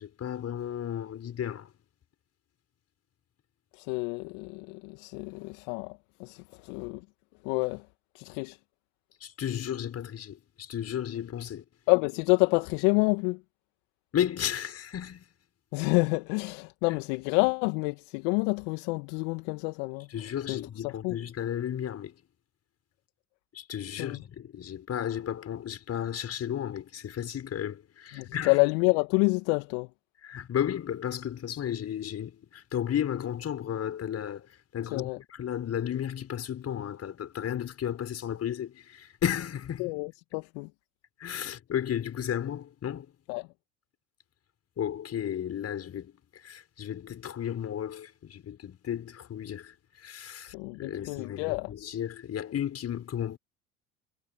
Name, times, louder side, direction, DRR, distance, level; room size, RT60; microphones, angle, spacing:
voice 1, 0.0-1.7 9.2-11.6 14.1-15.2 20.1-22.1 23.5-28.6 30.2-34.4 34.7-39.9 41.2-43.1 44.8-53.4, left 9 dB, 40° left, 6.3 m, -34 dB
voice 2, 3.8-7.0 7.4-7.8 8.2-8.6 11.9-13.4 15.7-20.1 20.5-21.2 24.0-24.2 28.1-29.9 34.9-35.2 39.8-40.7 43.3-43.5 50.5-51.7, left 30 dB, 65° left, 1.8 m, -28 dB
hypercardioid pair, 75°, 38 cm